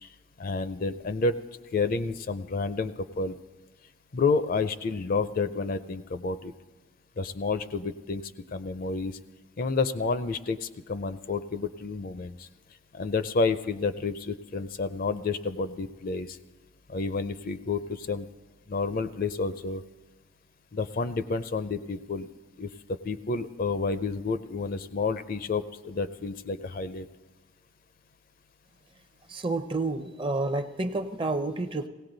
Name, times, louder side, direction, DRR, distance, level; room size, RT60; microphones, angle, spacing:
voice 1, 0.4-1.4 1.7-3.4 4.1-6.5 7.2-8.2 8.5-9.2 9.6-12.5 12.9-16.4 16.9-18.3 18.7-19.8 20.7-22.3 22.6-27.1, left 4 dB, 45° left, 12 dB, 0.5 m, -30 dB
voice 2, 29.3-31.9, right 2 dB, 25° right, 9 dB, 0.6 m, -29 dB
17.5 x 17.0 x 3.9 m, 1.2 s
head